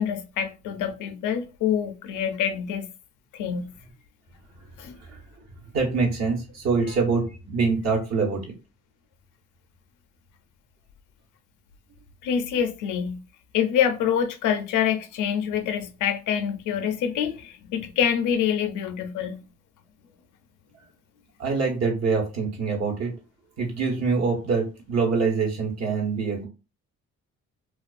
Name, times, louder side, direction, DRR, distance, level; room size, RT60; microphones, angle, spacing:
voice 1, 0.0-2.9 3.3-3.7 4.8-5.0 6.8-7.0 12.2-13.2 13.5-19.4, left 8 dB, 85° left, 0.5 m, -26 dB
voice 2, 5.7-8.5 21.4-23.1 23.6-26.5, right 4 dB, 60° right, 1.1 m, -25 dB
2.3 x 2.3 x 2.4 m
cardioid pair, 90°, 30 cm